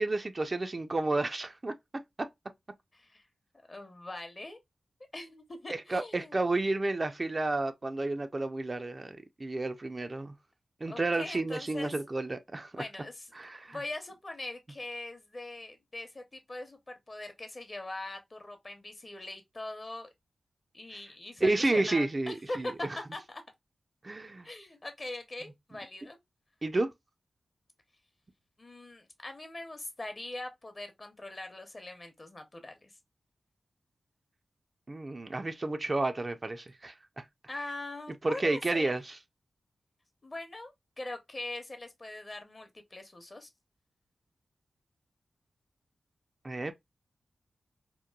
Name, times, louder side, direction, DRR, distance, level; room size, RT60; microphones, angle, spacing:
voice 1, 0.0-2.3 5.9-10.3 10.8-12.8 13.4-13.8 21.4-22.7 24.0-24.5 26.6-26.9 34.9-37.2 38.2-39.1 46.4-46.7, right 2 dB, 40° right, 0.4 m, -31 dB
voice 2, 2.9-3.3 3.7-4.6 5.1-6.4 10.9-11.9 12.7-13.3 13.6-20.1 20.7-23.4 24.4-26.2 28.6-33.0 37.5-38.9 40.2-43.5, left 2 dB, 40° left, 0.8 m, -42 dB
2.9 x 2.1 x 2.2 m
cardioid pair, 40°, 0 cm